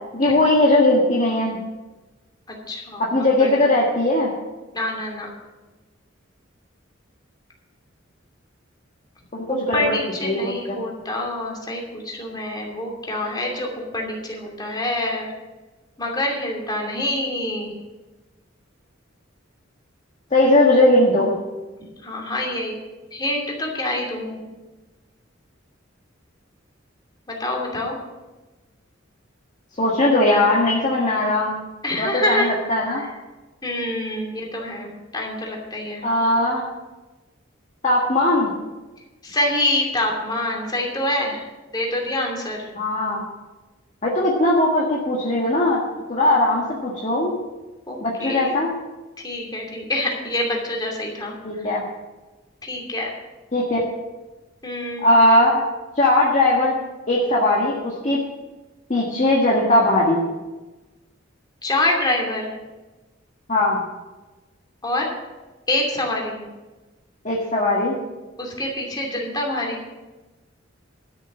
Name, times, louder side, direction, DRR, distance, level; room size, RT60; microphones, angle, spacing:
voice 1, 0.1-1.6 3.0-4.3 9.3-10.0 10.2-10.8 20.3-21.4 29.8-31.6 32.0-33.1 36.0-36.7 37.8-38.5 42.8-43.2 44.0-45.8 46.1-47.4 48.0-48.7 51.4-51.8 53.5-53.9 55.0-55.6 56.0-56.7 57.1-58.2 58.9-60.3 63.5-63.8 67.2-68.0, left 1 dB, 40° left, -4 dB, 1.6 m, -19 dB
voice 2, 2.5-3.7 4.7-5.3 9.5-15.3 16.0-17.7 22.0-22.7 23.1-24.4 27.3-28.0 31.8-32.6 32.9-33.1 33.6-36.0 39.2-41.4 41.7-42.6 47.9-48.5 49.2-51.4 51.6-51.7 52.6-53.1 54.6-55.1 61.6-62.5 64.8-65.2 65.7-66.4 68.4-69.8, left 1 dB, 20° left, -1 dB, 2.7 m, -26 dB
13.0 x 6.7 x 7.3 m, 1.2 s
head